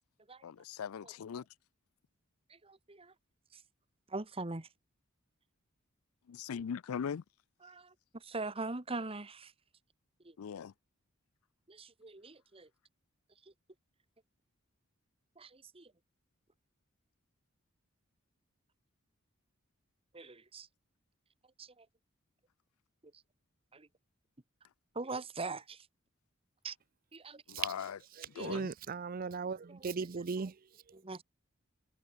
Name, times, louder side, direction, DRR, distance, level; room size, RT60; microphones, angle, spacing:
voice 1, 0.4-1.4 6.3-7.2 10.4-10.7 27.5-28.0 28.4-28.7, left 7 dB, 90° left, 0.4 m, -40 dB
voice 2, 2.5-3.1 3.5-3.6 4.1-4.7 7.6-9.5 10.2-10.3 11.7-12.7 15.4-15.9 20.1-20.7 21.6-21.8 23.7-23.9 24.9-25.9 26.6-26.7 27.1-27.4 28.3-28.6 29.7-29.8 30.9-31.2, right 3 dB, 25° right, 1.4 m, -42 dB
voice 3, 28.2-30.6 30.9-31.0, right 5 dB, 40° right, 0.5 m, -37 dB
head